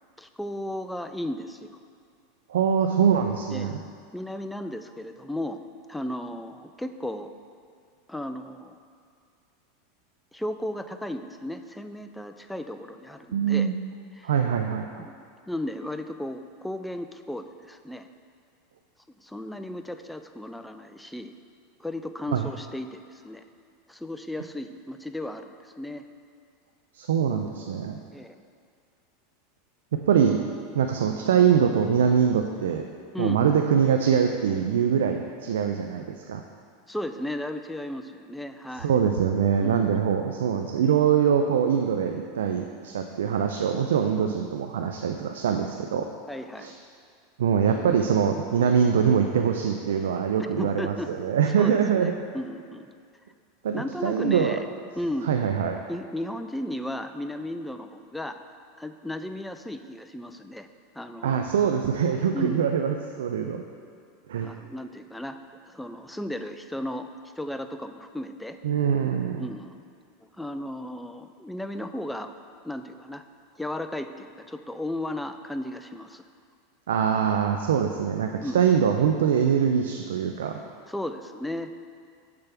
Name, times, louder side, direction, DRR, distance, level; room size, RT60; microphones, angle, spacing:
voice 1, 0.2-1.8 3.5-3.8 4.1-5.6 5.9-7.3 8.1-8.8 10.3-13.7 14.2-14.3 15.0-18.1 19.2-21.3 21.8-23.4 23.9-26.1 28.1-28.4 33.1-33.4 36.9-38.9 39.6-39.9 46.3-46.8 50.4-51.1 51.6-52.9 53.7-55.3 55.9-58.4 58.8-60.7 60.9-61.4 62.3-62.7 64.4-65.4 65.6-67.1 67.4-68.6 69.4-69.8 70.4-72.3 72.6-73.2 73.6-76.2 78.4-78.6 80.9-81.8, left 1 dB, 5° left, 8 dB, 0.3 m, -35 dB
voice 2, 2.5-3.8 13.3-13.7 14.2-15.1 22.3-22.5 26.9-28.0 29.9-30.4 30.7-32.8 33.2-36.4 38.8-46.1 46.6-46.7 47.4-52.1 53.6-54.6 55.3-55.8 61.2-63.6 64.3-64.5 68.6-69.5 76.9-80.6, right 7 dB, 90° right, 4 dB, 0.3 m, -23 dB
6.8 x 3.4 x 5.8 m, 2.2 s
supercardioid pair, 130°, 0 cm